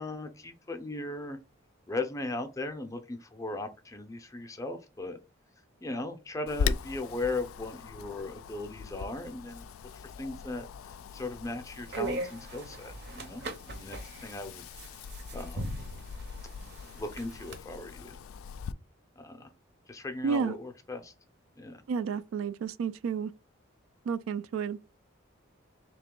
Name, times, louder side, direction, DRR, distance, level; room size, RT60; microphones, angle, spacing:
voice 1, 0.0-1.4 1.9-5.2 5.8-9.6 9.9-14.6 15.3-15.7 17.0-18.2 19.2-19.5 19.9-21.1 21.6-21.8, left 2 dB, 15° left, 0.5 m, -38 dB
Wind, 6.5-18.7, left 6 dB, 85° left, 0.3 m, -40 dB
sound 1, 11.6-17.6, right 3 dB, 50° right, 0.7 m, -40 dB
voice 2, 20.2-20.6 21.9-23.3 24.0-24.8, right 6 dB, 75° right, 0.3 m, -31 dB
3.6 x 2.9 x 3.7 m
head